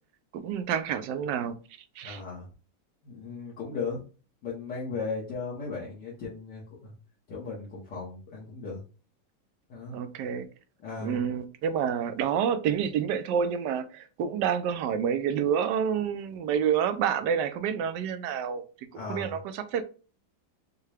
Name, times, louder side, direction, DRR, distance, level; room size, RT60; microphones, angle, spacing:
voice 1, 0.3-1.6 2.0-2.2 9.9-10.5 11.0-18.6 19.1-19.8, right 8 dB, 75° right, 1.0 m, -28 dB
voice 2, 2.0-2.5 3.0-4.0 4.4-6.9 7.3-8.8 9.7-10.0 10.8-11.2 18.9-19.3, left 4 dB, 60° left, 1.7 m, -36 dB
6.4 x 2.3 x 3.3 m
omnidirectional pair, 2.2 m